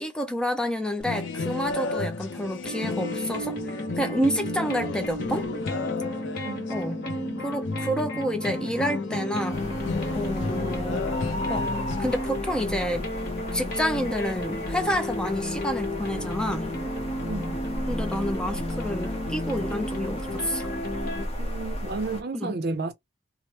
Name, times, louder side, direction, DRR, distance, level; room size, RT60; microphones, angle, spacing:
voice 1, 0.0-5.5 6.7-7.0 7.4-9.6 10.1-11.1 11.5-11.7 12.0-13.1 13.5-16.7 17.9-20.7 22.3-22.6, equal, 5° left, 0.4 m, -29 dB
sound 1, 1.0-12.1, left 3 dB, 80° left, 0.5 m, -33 dB
sound 2, 2.6-21.3, left 1 dB, 50° left, 1.2 m, -33 dB
voice 2, 6.4-7.5 17.2-17.6 21.4-22.9, right 3 dB, 55° right, 0.6 m, -33 dB
sound 3, 9.5-22.2, equal, 35° left, 0.9 m, -35 dB
2.9 x 2.0 x 3.0 m
head